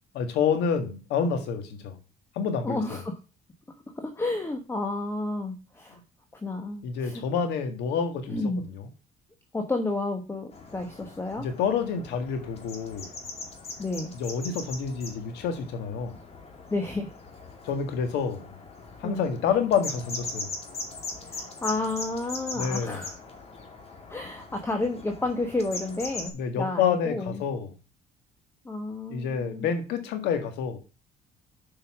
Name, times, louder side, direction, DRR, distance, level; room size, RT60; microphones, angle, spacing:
voice 1, 0.1-2.0 2.3-3.0 6.8-8.4 8.7-8.9 11.4-13.1 14.2-16.2 17.6-18.5 19.0-20.5 22.5-23.0 26.3-27.7 29.1-30.8, left 6 dB, 85° left, 7 dB, 1.7 m, -28 dB
voice 2, 2.6-3.2 4.0-6.0 6.4-7.4 8.3-8.6 9.5-11.5 13.8-14.1 16.7-17.1 19.0-19.2 21.3-23.2 24.1-27.4 28.6-29.7, left 2 dB, 15° left, 5 dB, 1.1 m, -31 dB
sound 1, 10.5-26.3, left 3 dB, 35° left, 2.4 m, -40 dB
6.9 x 5.6 x 6.0 m, 0.33 s
cardioid pair, 110°, 17 cm